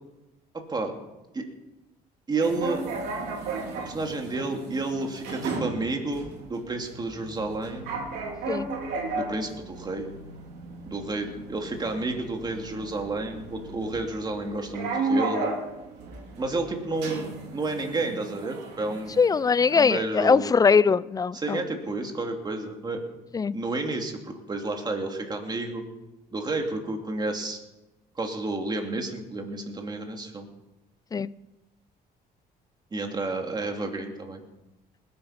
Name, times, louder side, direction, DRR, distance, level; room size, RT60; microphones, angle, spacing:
voice 1, 0.5-0.9 1.3-1.5 2.3-2.8 3.8-7.9 9.1-10.1 10.8-15.5 16.4-19.2 19.6-20.5 21.3-23.0 23.5-25.8 26.3-27.6 28.2-30.5 32.9-34.4, right 2 dB, 25° right, 3 dB, 2.5 m, -31 dB
sound 1, 2.4-19.9, right 3 dB, 90° right, 3.4 m, -35 dB
voice 2, 19.2-21.6 23.3-23.6 31.1-31.3, left 5 dB, 20° left, 20 dB, 0.4 m, -21 dB
20.0 x 8.7 x 5.8 m, 1.0 s
cardioid pair, 110°, 17 cm